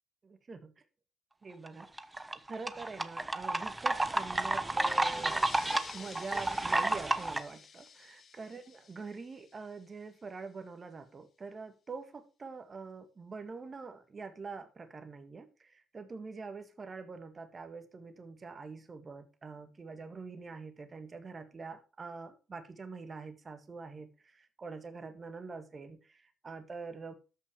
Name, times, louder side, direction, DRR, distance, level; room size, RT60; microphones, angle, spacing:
voice 1, 0.2-0.7 1.4-1.9 2.3-5.5 5.9-27.1, right 4 dB, 35° right, 1.9 m, -45 dB
sound 1, 1.7-7.4, right 2 dB, 15° right, 0.9 m, -31 dB
sound 2, 3.9-10.1, left 6 dB, 45° left, 1.6 m, -52 dB
13.0 x 5.7 x 4.9 m
cardioid pair, 90°, 0 cm